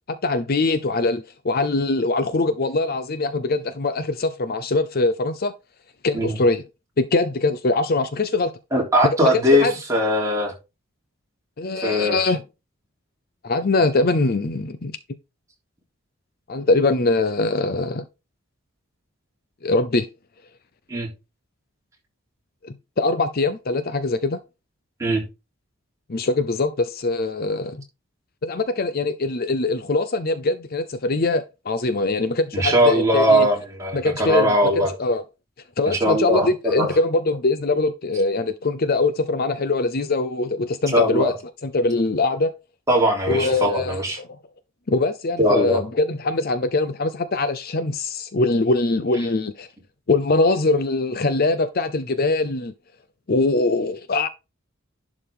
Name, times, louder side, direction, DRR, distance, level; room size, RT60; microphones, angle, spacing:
voice 1, 0.1-5.5 6.0-6.6 7.0-8.5 9.0-9.7 11.6-12.4 13.4-15.0 16.5-18.0 19.6-20.1 22.6-24.4 26.1-27.8 28.4-33.5 33.9-35.2 35.8-41.4 41.6-42.5 43.3-44.3 44.9-49.7 50.1-52.7 53.3-54.3, left 3 dB, 45° left, 0.6 m, -22 dB
voice 2, 8.7-10.5 11.8-12.2 20.9-21.1 25.0-25.2 32.5-34.9 35.9-36.9 40.9-41.3 42.9-44.2 45.4-45.8, equal, 15° right, 3.4 m, -20 dB
11.0 x 4.9 x 3.7 m
head